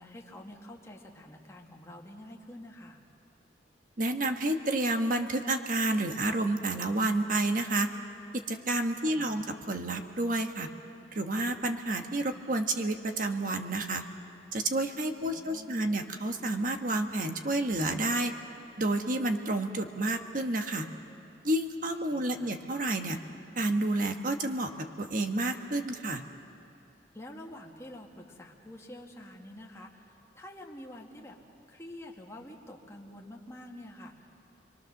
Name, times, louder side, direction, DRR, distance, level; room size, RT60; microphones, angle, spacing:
voice 1, 0.0-3.0 9.0-9.5 15.2-16.0 22.1-22.5 27.1-31.4 31.7-34.3, left 1 dB, 15° left, -1 dB, 2.0 m, -47 dB
voice 2, 4.0-7.9 8.5-10.7 11.1-14.0 14.5-18.3 18.8-20.9 21.4-23.2 23.6-24.7 25.0-26.2, right 2 dB, 50° right, 5 dB, 1.4 m, -30 dB
29.0 x 22.5 x 6.6 m, 2.7 s
head